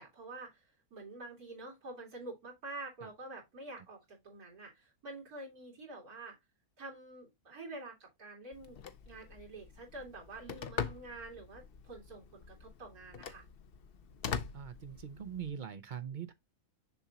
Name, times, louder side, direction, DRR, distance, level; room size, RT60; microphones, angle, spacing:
voice 1, 0.0-6.4 6.8-8.8 9.1-13.4, right 2 dB, 85° right, 3.2 m, -48 dB
Telephone, 8.5-15.5, left 7 dB, 50° left, 0.7 m, -43 dB
voice 2, 14.5-16.3, right 8 dB, 55° right, 0.5 m, -42 dB
6.9 x 5.9 x 2.8 m
omnidirectional pair, 1.5 m